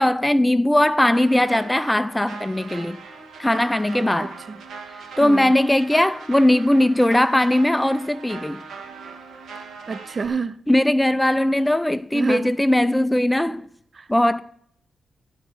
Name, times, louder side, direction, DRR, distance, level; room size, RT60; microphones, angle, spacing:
voice 1, 0.0-3.0 3.4-4.4 5.2-8.6 10.7-13.7 14.1-14.4, left 1 dB, 10° left, 0.4 m, -19 dB
sound 1, 1.1-10.3, right 4 dB, 85° right, 1.5 m, -40 dB
voice 2, 4.2-4.6 5.2-5.5 9.9-10.6 12.1-12.5 14.0-14.1, right 5 dB, 45° right, 0.6 m, -29 dB
10.0 x 5.0 x 7.7 m
cardioid pair, 85°, 0 cm